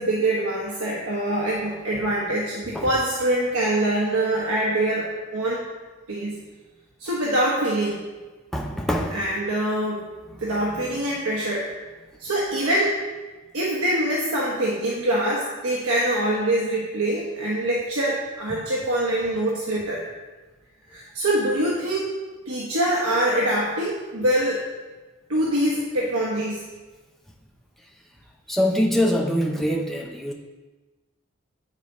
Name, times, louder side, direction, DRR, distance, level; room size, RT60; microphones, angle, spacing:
voice 1, 0.0-5.7 6.1-6.4 7.0-8.0 9.1-10.0 10.4-11.6 12.2-13.0 13.5-20.0 20.9-22.1 22.5-24.6 25.3-26.6, right 1 dB, 90° right, -4 dB, 1.1 m, -24 dB
voice 2, 8.5-9.2 28.5-30.3, equal, ahead, -1 dB, 0.6 m, -23 dB
9.5 x 4.0 x 4.8 m, 1.2 s
head